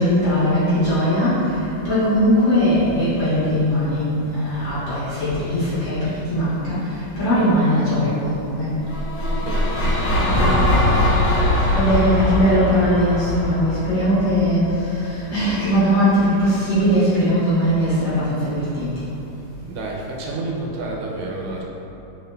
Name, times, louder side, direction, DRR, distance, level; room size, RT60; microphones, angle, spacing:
voice 1, 0.0-8.8 11.7-19.1, equal, 65° left, -13 dB, 2.2 m, -20 dB
sound 1, 8.8-15.0, left 1 dB, 85° left, 1.5 m, -21 dB
voice 2, 9.3-10.4 19.7-21.6, right 2 dB, 85° right, -2 dB, 1.4 m, -30 dB
5.4 x 2.7 x 2.2 m, 2.9 s
omnidirectional pair, 2.2 m